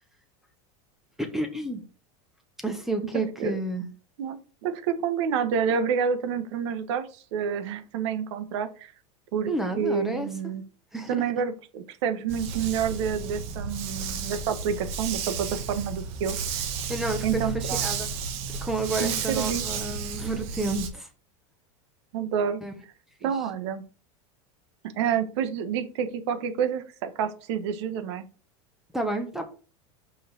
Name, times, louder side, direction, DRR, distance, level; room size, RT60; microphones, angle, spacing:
voice 1, 1.2-1.8 2.6-3.9 9.5-10.3 10.9-11.2 16.9-18.1 18.6-21.1 22.6-22.7 23.2-23.3 28.9-29.4, right 2 dB, ahead, 5 dB, 1.1 m, -30 dB
voice 2, 4.2-8.9 9.3-9.5 9.8-10.6 11.1-16.4 17.2-17.8 19.0-19.6 22.1-22.6 23.2-23.8 24.9-28.3, right 7 dB, 65° right, 10 dB, 1.2 m, -28 dB
Dog, 12.3-20.9, right 6 dB, 40° right, 1.2 m, -32 dB
5.8 x 5.1 x 6.7 m, 0.37 s
supercardioid pair, 175°, 16 cm